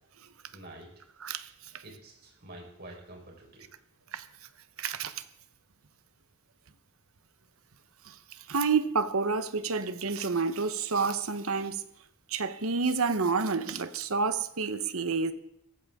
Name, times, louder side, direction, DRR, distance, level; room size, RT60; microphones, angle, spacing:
voice 1, 0.5-0.9 1.8-3.7, right 1 dB, 45° right, 4.4 m, -48 dB
voice 2, 4.8-5.2 8.1-8.2 8.5-11.8 12.3-15.3, right 4 dB, 70° right, 1.0 m, -29 dB
17.5 x 15.0 x 3.7 m
head